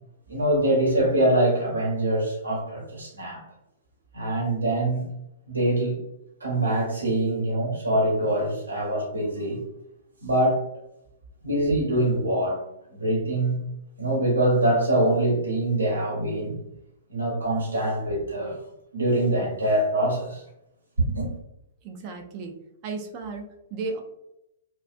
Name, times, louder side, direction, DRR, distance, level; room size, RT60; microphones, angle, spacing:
voice 1, 0.3-3.4 4.1-5.0 5.5-6.0 6.4-9.6 10.2-10.6 11.4-12.6 12.9-13.7 14.0-16.6 17.1-18.6 18.9-20.4 21.1-21.3, right 1 dB, 80° right, -2 dB, 1.0 m, -24 dB
voice 2, 21.8-22.5 22.8-24.0, right 3 dB, 40° right, 3 dB, 0.5 m, -34 dB
2.4 x 2.3 x 2.4 m, 0.86 s
figure-of-eight pair, 110°, 0 cm